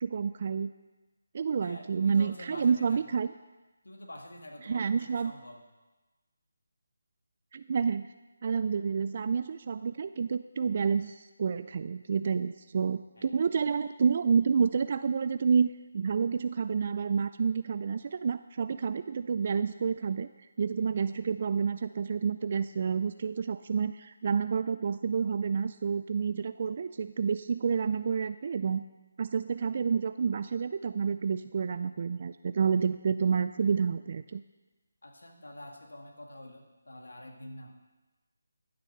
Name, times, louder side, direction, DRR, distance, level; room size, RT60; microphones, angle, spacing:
voice 1, 0.0-0.7 1.3-3.3 4.6-5.3 7.5-8.1 8.4-20.3 20.6-28.8 29.2-34.4, right 6 dB, 45° right, 12 dB, 0.4 m, -29 dB
voice 2, 1.6-3.2 3.8-5.6 13.2-13.4 35.0-37.7, left 1 dB, 80° left, 2 dB, 1.7 m, -47 dB
12.5 x 6.9 x 6.4 m, 1.2 s
figure-of-eight pair, 160°, 0 cm